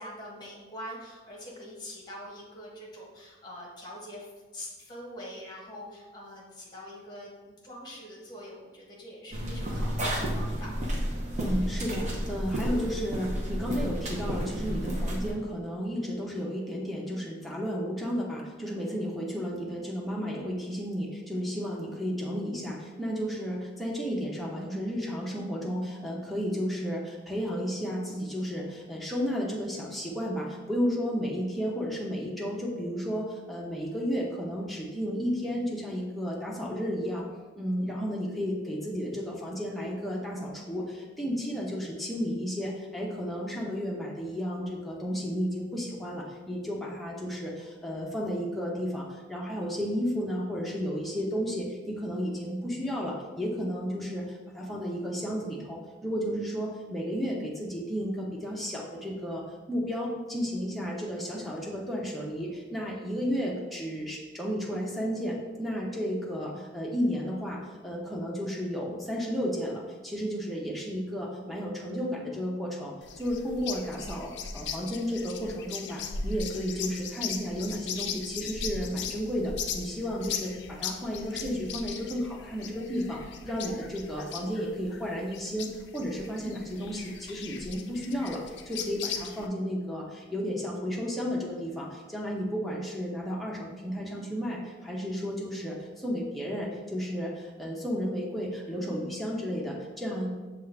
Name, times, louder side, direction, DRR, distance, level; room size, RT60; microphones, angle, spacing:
voice 1, 0.0-10.7 91.2-91.8, equal, 25° left, -3 dB, 1.0 m, -44 dB
sound 1, 9.3-15.3, equal, 40° right, 0.8 m, -31 dB
voice 2, 11.4-37.2 37.6-100.3, equal, ahead, -4 dB, 0.7 m, -33 dB
sound 2, 73.0-89.5, left 6 dB, 75° left, 0.4 m, -38 dB
6.3 x 2.4 x 3.2 m, 1.3 s
head